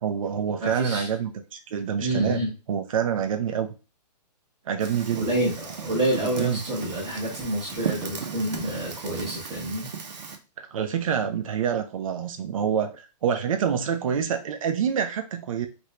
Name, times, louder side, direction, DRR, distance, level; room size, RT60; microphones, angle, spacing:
voice 1, 0.0-2.4 2.7-3.7 4.7-5.3 6.2-6.6 10.6-15.7, right 8 dB, 55° right, 7 dB, 0.5 m, -27 dB
voice 2, 0.6-1.1 2.0-2.5 5.1-9.9, right 1 dB, 15° right, -7 dB, 0.8 m, -28 dB
Fire, 4.8-10.4, right 6 dB, 85° right, 0.9 m, -36 dB
2.9 x 2.6 x 3.2 m, 0.31 s
hypercardioid pair, 165°, 21 cm